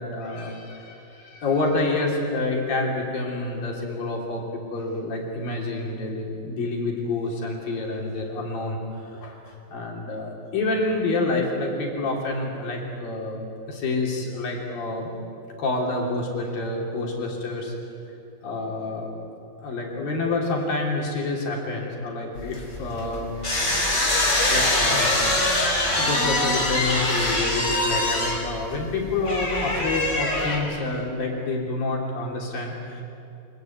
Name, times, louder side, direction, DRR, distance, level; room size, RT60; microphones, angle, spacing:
voice 1, 0.0-13.4 13.7-15.1 15.6-17.7 18.4-19.1 19.6-23.3 24.0-24.2 24.5-25.3 25.6-33.0, left 2 dB, 55° left, -1 dB, 4.6 m, -28 dB
sound 1, 22.4-30.6, left 1 dB, 20° left, 5.3 m, -23 dB
26.5 x 22.0 x 9.3 m, 2.8 s
omnidirectional pair, 5.0 m